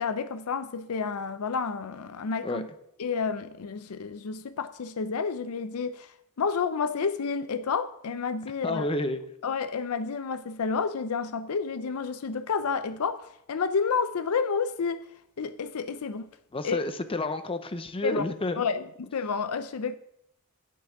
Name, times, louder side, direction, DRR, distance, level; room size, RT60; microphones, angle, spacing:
voice 1, 0.0-2.7 3.0-8.9 9.4-15.1 15.4-16.3 16.6-16.8 18.0-18.3 18.6-20.0, left 5 dB, 90° left, 0.5 m, -30 dB
voice 2, 8.6-9.2 16.5-18.6, left 2 dB, 25° left, 0.7 m, -30 dB
9.2 x 5.8 x 7.1 m
head